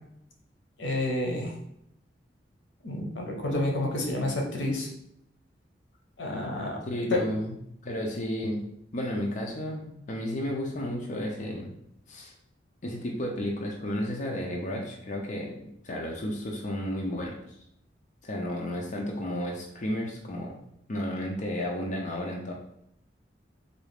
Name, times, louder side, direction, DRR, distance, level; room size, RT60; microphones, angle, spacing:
voice 1, 0.8-1.5 2.8-4.9 6.2-6.8 7.1-7.2, left 1 dB, 85° left, 1 dB, 0.8 m, -29 dB
voice 2, 6.8-7.6 7.8-8.6 8.9-11.7 12.1-12.3 12.8-17.4 18.2-20.6 20.9-22.5, left 1 dB, 45° left, -1 dB, 0.5 m, -32 dB
3.9 x 2.4 x 3.3 m, 0.74 s
head